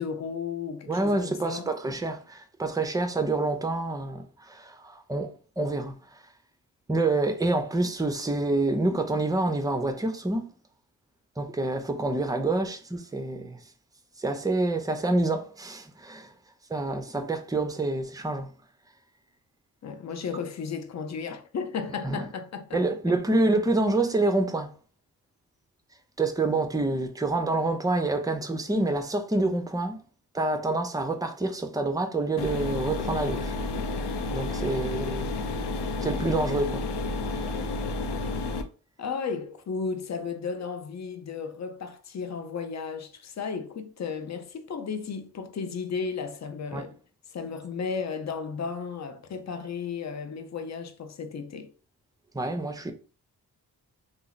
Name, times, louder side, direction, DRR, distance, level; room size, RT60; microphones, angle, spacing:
voice 1, 0.0-1.7 19.8-22.8 23.1-23.2 39.0-47.0 47.3-51.7, left 5 dB, 45° left, 0.6 m, -34 dB
voice 2, 0.9-6.2 6.9-10.5 11.4-13.6 14.2-16.3 16.7-18.5 22.0-22.3 22.7-24.7 26.2-30.0 30.3-33.5 34.0-35.2 36.0-36.9 37.3-37.5 46.7-46.8 52.3-52.9, right 2 dB, 10° right, 0.6 m, -27 dB
sound 1, 32.4-38.6, left 3 dB, 85° left, 0.5 m, -31 dB
2.9 x 2.0 x 3.8 m
cardioid pair, 50°, 39 cm